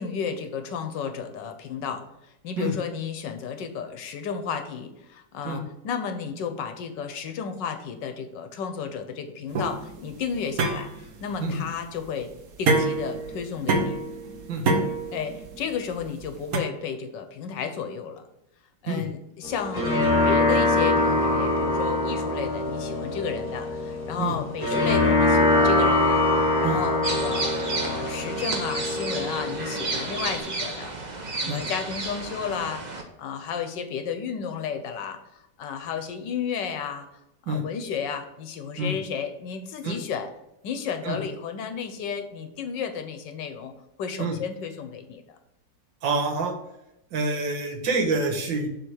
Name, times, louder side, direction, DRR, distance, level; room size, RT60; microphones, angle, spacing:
voice 1, 0.0-2.0 2.4-12.3 12.6-14.0 15.1-18.2 18.8-37.1 37.4-40.3 40.6-43.7 44.0-45.2, left 7 dB, 75° left, 7 dB, 1.4 m, -33 dB
sound 1, 9.5-16.6, right 3 dB, 60° right, 1.2 m, -27 dB
sound 2, 19.4-30.4, left 2 dB, 10° left, 1.9 m, -24 dB
sound 3, 27.0-33.0, right 3 dB, 40° right, 0.6 m, -32 dB
voice 2, 46.0-46.5 47.1-48.7, right 3 dB, 75° right, 4 dB, 1.9 m, -27 dB
7.0 x 3.6 x 6.2 m, 0.85 s
omnidirectional pair, 2.0 m